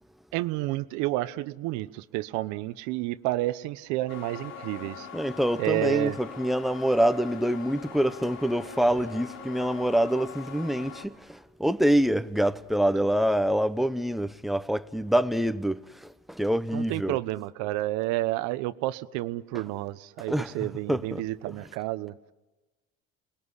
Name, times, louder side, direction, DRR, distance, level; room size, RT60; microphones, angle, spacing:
voice 1, 0.3-5.1 5.6-6.2 16.7-22.1, right 17 dB, 75° right, 1.0 m, -30 dB
sound 1, 4.1-11.1, left 6 dB, 60° left, 3.4 m, -43 dB
voice 2, 5.1-17.2 19.5-19.6 20.2-21.3, equal, ahead, 0.9 m, -26 dB
28.0 x 20.5 x 9.9 m
supercardioid pair, 105°, 29 cm